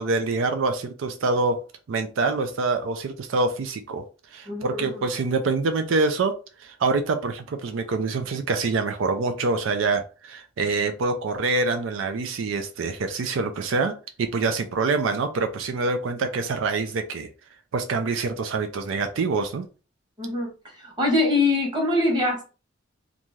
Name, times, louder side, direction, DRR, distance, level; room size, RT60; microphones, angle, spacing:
voice 1, 0.0-1.6 1.9-4.0 4.3-6.3 6.6-17.3 17.7-19.7, right 3 dB, 85° right, 7 dB, 0.4 m, -25 dB
voice 2, 4.5-5.0 20.2-20.5 20.8-22.5, left 2 dB, 25° right, -1 dB, 1.1 m, -23 dB
2.6 x 2.3 x 3.0 m, 0.33 s
head